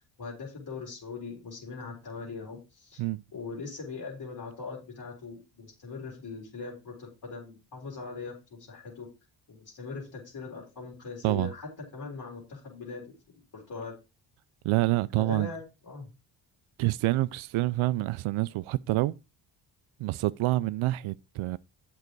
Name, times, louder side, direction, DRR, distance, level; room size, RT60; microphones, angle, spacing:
voice 1, 0.2-3.0 3.3-9.1 9.5-13.0 13.5-14.0 15.2-16.1, left 4 dB, 55° left, 3.9 m, -40 dB
voice 2, 14.6-15.5 16.8-19.1 20.0-21.6, right 18 dB, 85° right, 0.5 m, -27 dB
8.3 x 6.6 x 4.6 m
cardioid pair, 85°, 47 cm